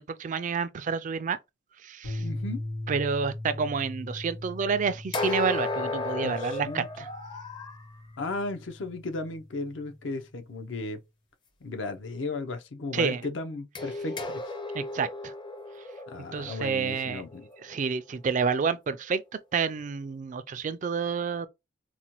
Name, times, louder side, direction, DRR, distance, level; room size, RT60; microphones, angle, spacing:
voice 1, 0.0-1.4 1.8-2.2 2.9-7.1 12.9-13.2 14.7-15.3 16.3-17.2 17.6-19.2 19.5-21.5, right 5 dB, 40° right, 0.3 m, -29 dB
sound 1, 2.0-10.4, left 1 dB, 90° left, 1.6 m, -40 dB
voice 2, 2.2-2.6 6.2-6.9 8.2-11.0 11.6-14.4 16.1-17.5, left 2 dB, 70° left, 0.6 m, -35 dB
sound 2, 5.1-7.8 13.8-17.8, left 2 dB, 25° left, 0.5 m, -34 dB
4.0 x 2.2 x 2.9 m
head